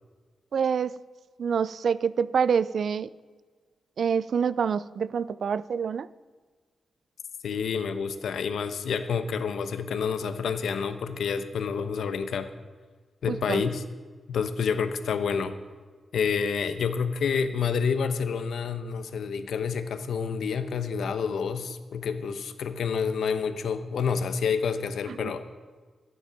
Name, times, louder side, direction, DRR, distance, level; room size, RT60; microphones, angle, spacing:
voice 1, 0.5-0.9 1.4-3.1 4.0-6.1 13.3-13.6 25.2-25.3, right 6 dB, 70° right, 18 dB, 0.4 m, -26 dB
voice 2, 7.4-12.5 13.2-13.8 14.3-15.5 16.1-25.4, left 6 dB, 85° left, 10 dB, 0.9 m, -28 dB
15.0 x 9.7 x 5.2 m, 1.5 s
cardioid pair, 100°, 0 cm